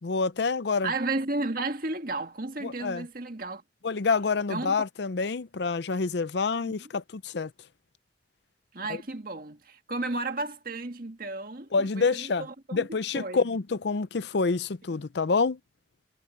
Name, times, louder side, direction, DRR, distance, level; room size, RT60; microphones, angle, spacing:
voice 1, 0.0-0.9 2.6-3.1 3.8-7.5 11.7-12.5 12.7-15.6, left 4 dB, 65° left, 0.6 m, -27 dB
voice 2, 0.8-3.6 4.5-4.8 8.7-12.9 13.1-13.5 14.8-15.0, right 2 dB, 50° right, 1.9 m, -33 dB
head